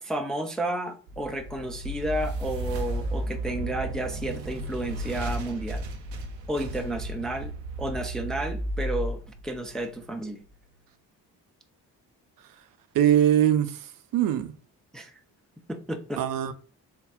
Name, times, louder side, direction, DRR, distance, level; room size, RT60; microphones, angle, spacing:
voice 1, 0.0-5.8 6.5-7.5 7.8-10.4 14.9-15.1 15.7-16.2, right 1 dB, ahead, 0.4 m, -32 dB
sound 1, 1.1-10.2, right 1 dB, 85° right, 0.6 m, -34 dB
voice 2, 12.9-13.8 14.1-14.5 16.2-16.5, right 10 dB, 45° right, 0.6 m, -21 dB
3.5 x 2.3 x 3.6 m
figure-of-eight pair, 40°, 49 cm